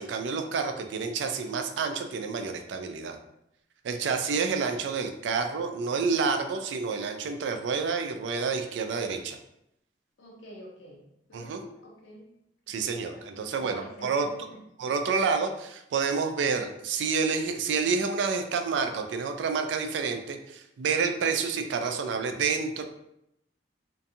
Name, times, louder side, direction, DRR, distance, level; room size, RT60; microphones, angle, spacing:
voice 1, 0.0-3.2 3.8-9.4 11.3-11.6 12.7-14.3 14.8-22.8, right 5 dB, 80° right, 6 dB, 0.3 m, -29 dB
voice 2, 10.2-11.0 11.3-12.3 12.7-14.6, equal, 85° left, -1 dB, 0.6 m, -48 dB
2.5 x 2.2 x 2.6 m, 0.80 s
head